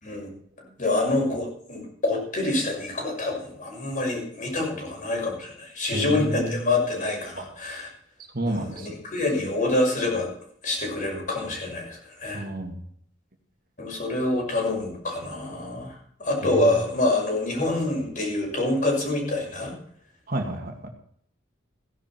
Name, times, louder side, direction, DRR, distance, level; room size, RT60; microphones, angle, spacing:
voice 1, 0.8-7.9 8.4-10.3 10.6-12.5 13.8-19.7, left 2 dB, 45° left, -1 dB, 6.2 m, -26 dB
voice 2, 5.9-6.7 7.4-7.5 8.3-8.9 12.3-12.8 16.4-16.7 20.3-20.9, right 1 dB, 50° right, 3 dB, 2.1 m, -30 dB
16.0 x 11.0 x 4.5 m, 0.63 s
head